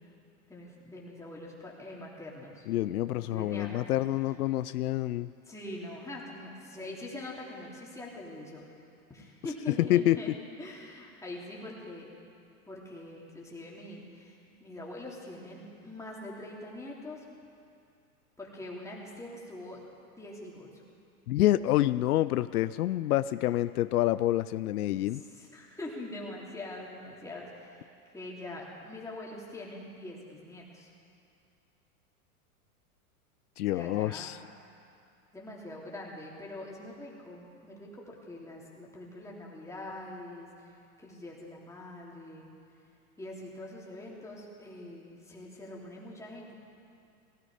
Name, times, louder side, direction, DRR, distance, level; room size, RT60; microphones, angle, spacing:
voice 1, 0.5-2.7 3.1-3.8 5.5-8.7 9.1-10.3 10.6-12.1 12.7-17.3 18.4-19.8 20.1-20.7 25.1-27.9 28.1-30.9 33.7-34.4 35.3-42.4 43.2-46.5, left 1 dB, 5° left, -4 dB, 3.1 m, -43 dB
voice 2, 2.7-5.3 9.8-10.2 21.3-25.2 33.6-34.4, left 14 dB, 85° left, 15 dB, 0.5 m, -27 dB
17.5 x 16.5 x 5.0 m, 2.6 s
hypercardioid pair, 115°, 44 cm